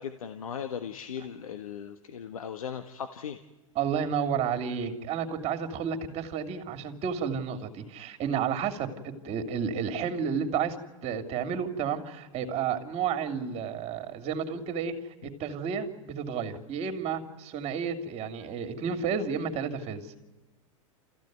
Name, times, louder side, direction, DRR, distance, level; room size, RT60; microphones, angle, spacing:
voice 1, 0.0-3.4, left 8 dB, 80° left, 8 dB, 1.3 m, -38 dB
voice 2, 3.7-10.8 11.0-14.9 15.2-20.2, right 7 dB, 35° right, 6 dB, 2.9 m, -31 dB
29.5 x 14.5 x 9.4 m, 1.1 s
hypercardioid pair, 105°, 18 cm